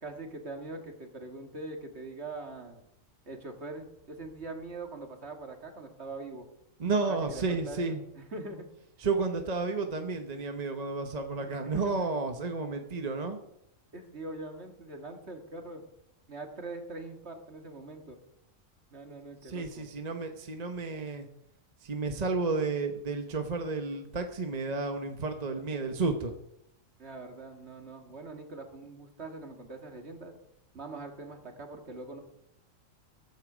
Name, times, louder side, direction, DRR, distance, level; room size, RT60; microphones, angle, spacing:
voice 1, 0.0-2.8 3.3-6.5 7.1-7.8 8.1-8.7 11.5-12.2 13.9-15.8 16.3-18.2 18.9-19.9 27.0-30.3 30.7-32.2, right 2 dB, 55° right, 4 dB, 2.2 m, -42 dB
voice 2, 6.8-8.0 9.0-13.4 19.5-21.3 21.8-26.3, right 3 dB, 35° right, 5 dB, 1.0 m, -32 dB
14.0 x 13.0 x 5.1 m, 0.80 s
omnidirectional pair, 1.4 m